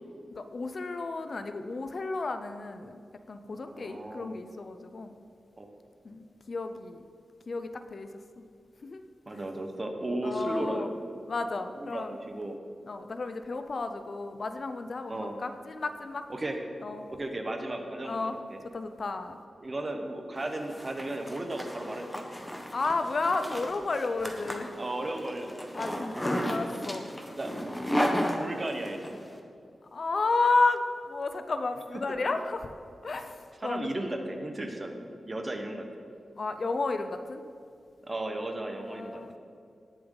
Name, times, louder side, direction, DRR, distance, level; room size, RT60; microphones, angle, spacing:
voice 1, 0.3-3.0 3.3-5.1 6.0-7.0 7.5-8.1 8.8-9.0 9.3-9.4 10.2-10.9 11.3-12.2 12.9-16.2 16.8-17.0 18.0-18.4 18.6-19.4 22.7-24.7 25.7-27.1 29.9-32.7 33.0-33.9 36.4-37.4 38.8-39.4, left 3 dB, 50° left, 8 dB, 0.6 m, -32 dB
voice 2, 3.5-4.4 5.6-5.7 9.3-10.9 11.8-12.6 15.1-15.4 16.3-16.6 17.1-18.6 19.6-22.3 24.8-26.0 27.4-27.5 28.4-29.2 31.9-32.3 33.6-35.0 35.3-35.9 38.1-39.2, right 1 dB, 30° right, 4 dB, 1.2 m, -35 dB
Zipper (clothing), 20.4-29.1, equal, 5° left, 1.1 m, -33 dB
17.5 x 7.2 x 4.0 m, 2.3 s
wide cardioid pair, 110°, 0 cm